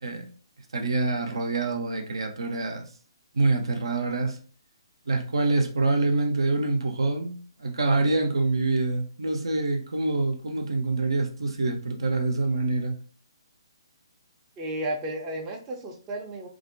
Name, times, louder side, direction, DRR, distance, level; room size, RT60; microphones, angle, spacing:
voice 1, 0.7-2.9 3.3-4.4 5.1-13.0, right 3 dB, 70° right, 0.5 m, -26 dB
voice 2, 14.6-16.5, right 1 dB, 20° right, 0.5 m, -33 dB
2.5 x 2.1 x 2.6 m
figure-of-eight pair, 135°, 3 cm